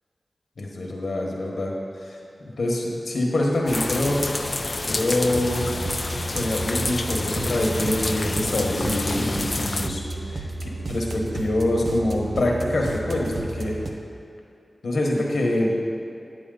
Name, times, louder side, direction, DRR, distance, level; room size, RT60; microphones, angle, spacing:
voice 1, 0.6-1.7 2.0-2.2 2.4-4.3 4.9-5.7 6.3-10.0 10.3-13.7 14.8-15.7, left 1 dB, 80° left, -1 dB, 1.3 m, -25 dB
sound 1, 3.7-9.9, left 2 dB, 40° left, 0.4 m, -29 dB
sound 2, 5.3-13.9, right 2 dB, 65° right, 0.8 m, -32 dB
9.9 x 8.3 x 3.9 m, 2.4 s
cardioid pair, 55°, 0 cm